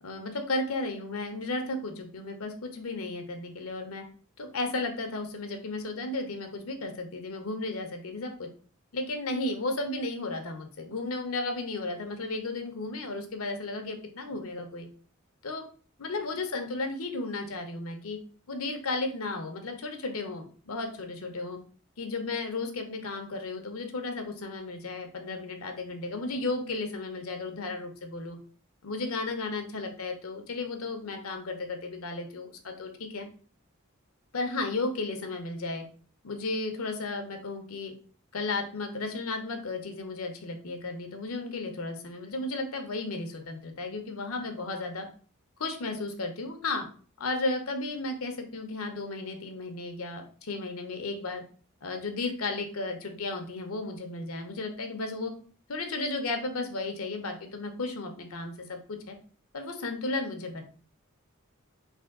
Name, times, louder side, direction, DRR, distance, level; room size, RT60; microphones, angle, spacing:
voice 1, 0.0-4.0 4.4-8.5 8.9-14.9 15.4-15.6 16.0-18.2 18.5-21.6 22.0-28.4 28.8-33.3 34.3-35.8 36.2-37.9 38.3-45.1 45.6-46.9 47.2-51.4 51.8-55.3 55.7-59.2 59.5-60.6, left 3 dB, 85° left, 5 dB, 0.7 m, -34 dB
3.5 x 2.6 x 3.6 m, 0.43 s
head